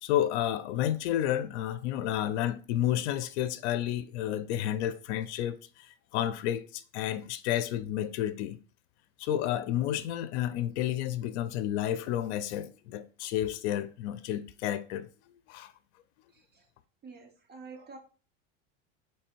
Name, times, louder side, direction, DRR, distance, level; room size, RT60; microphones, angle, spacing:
voice 1, 0.0-8.6 9.2-15.1 15.5-15.7, left 11 dB, 85° left, 0.5 m, -31 dB
voice 2, 16.3-16.7 17.0-18.0, right 4 dB, 30° right, 0.8 m, -48 dB
3.3 x 3.2 x 4.5 m
supercardioid pair, 120°, 33 cm